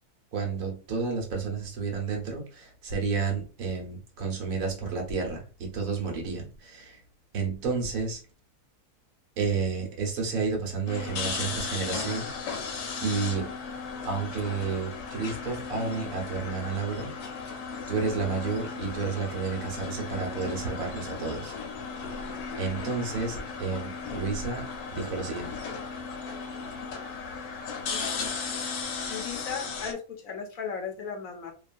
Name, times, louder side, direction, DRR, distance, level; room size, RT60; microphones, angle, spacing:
voice 1, 0.3-7.0 7.3-8.2 9.4-12.5 13.0-13.5 14.0-17.1 17.9-21.5 22.6-24.6 24.9-25.5, right 4 dB, 65° right, 1 dB, 1.3 m, -31 dB
sound 1, 10.9-29.9, left 5 dB, 85° left, 1.1 m, -36 dB
voice 2, 29.1-31.5, left 6 dB, 70° left, 3 dB, 1.1 m, -36 dB
2.9 x 2.4 x 2.4 m, 0.36 s
omnidirectional pair, 1.6 m